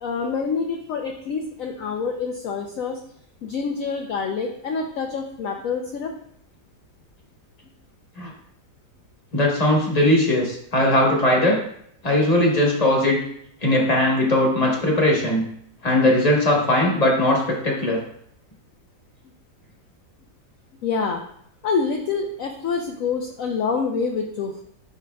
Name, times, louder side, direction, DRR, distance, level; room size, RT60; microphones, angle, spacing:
voice 1, 0.0-3.0 3.4-6.1 20.8-21.2 21.6-24.6, left 5 dB, 70° left, 3 dB, 0.8 m, -26 dB
voice 2, 9.3-11.6 12.0-13.2 13.6-15.4 15.8-18.0, left 1 dB, 25° left, -1 dB, 1.2 m, -19 dB
8.4 x 4.9 x 2.3 m, 0.69 s
omnidirectional pair, 1.9 m